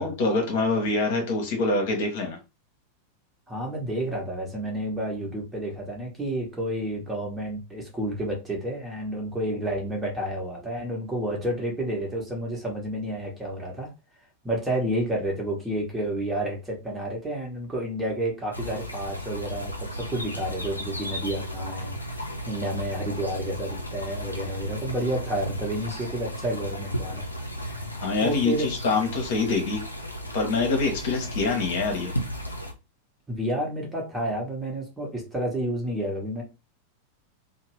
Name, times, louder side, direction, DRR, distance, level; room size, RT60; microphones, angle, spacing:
voice 1, 0.0-2.4 27.9-29.8 30.3-32.1, left 3 dB, 50° left, 3 dB, 0.9 m, -25 dB
voice 2, 3.5-13.9 14.4-27.3 27.6-27.9 28.2-28.7 33.3-36.4, right 1 dB, 10° right, -2 dB, 1.1 m, -30 dB
sound 1, 18.5-32.7, equal, 85° left, 0.5 m, -34 dB
2.8 x 2.1 x 3.1 m, 0.27 s
figure-of-eight pair, 90°, 0 cm